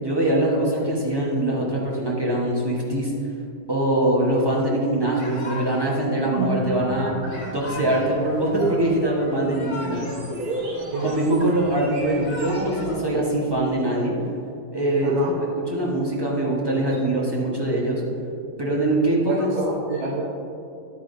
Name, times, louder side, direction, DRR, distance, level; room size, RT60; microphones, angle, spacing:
voice 1, 0.0-3.1 3.7-7.1 7.5-10.1 11.0-14.1 14.7-15.1 15.7-18.0 18.6-19.5, right 1 dB, 15° right, -4 dB, 1.1 m, -23 dB
Yell / Crying sobbing, 5.1-5.9 7.3-8.2 9.3-10.2 10.5-11.5 12.0-12.9, left 2 dB, 60° left, 1.9 m, -37 dB
sound 1, 6.1-12.9, right 2 dB, 55° right, 1.7 m, -33 dB
voice 2, 10.9-11.3 15.0-15.3 19.3-20.2, right 3 dB, 90° right, -4 dB, 1.7 m, -28 dB
10.5 x 8.9 x 2.7 m, 2.6 s
omnidirectional pair, 1.9 m